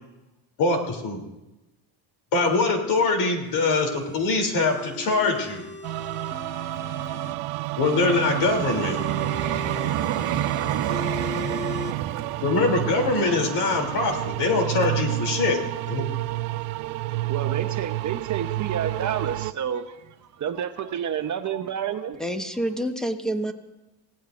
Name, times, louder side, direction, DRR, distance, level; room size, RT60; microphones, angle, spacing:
voice 1, 0.6-1.2 2.3-5.6 7.8-9.0 12.4-15.6 15.9-16.1, left 3 dB, 55° left, 3 dB, 3.2 m, -23 dB
sound 1, 3.4-7.3 7.8-11.9, left 3 dB, 25° left, 1.4 m, -38 dB
sound 2, 5.8-19.5, right 19 dB, 90° right, 0.6 m, -30 dB
Vehicle, 6.7-15.7 16.4-16.5, right 10 dB, 70° right, 1.2 m, -32 dB
voice 2, 17.0-22.2, right 9 dB, 40° right, 7 dB, 0.9 m, -30 dB
voice 3, 22.2-23.5, right 1 dB, ahead, 5 dB, 1.3 m, -27 dB
28.0 x 17.0 x 2.6 m, 1.0 s
cardioid pair, 120°, 47 cm